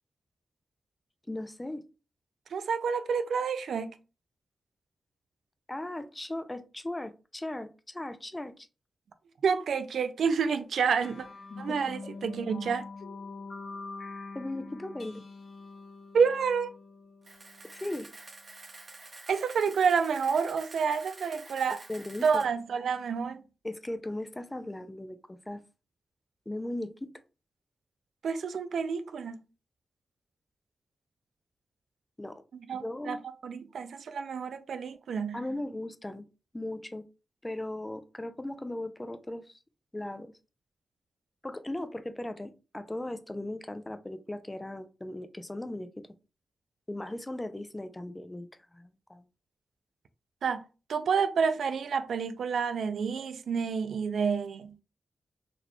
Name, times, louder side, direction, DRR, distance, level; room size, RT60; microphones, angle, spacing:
voice 1, 1.3-1.8 5.7-8.7 11.7-11.9 14.3-15.2 17.7-18.1 21.9-22.5 23.6-25.6 26.5-27.1 32.2-32.4 32.8-33.2 35.3-36.2 36.5-37.1 37.4-39.6 39.9-40.3 41.4-46.1 46.9-49.2, left 1 dB, 15° left, 0.4 m, -38 dB
voice 2, 2.5-3.9 9.4-11.3 11.6-12.9 16.1-16.7 19.3-21.8 22.2-23.4 28.2-29.4 32.5-35.4 50.4-50.6 50.9-54.7, right 6 dB, 85° right, 0.3 m, -29 dB
sound 1, 11.0-17.9, left 3 dB, 50° left, 0.6 m, -44 dB
Camera, 17.2-22.4, right 3 dB, 45° right, 0.8 m, -49 dB
3.9 x 3.0 x 2.2 m
wide cardioid pair, 110°, 0 cm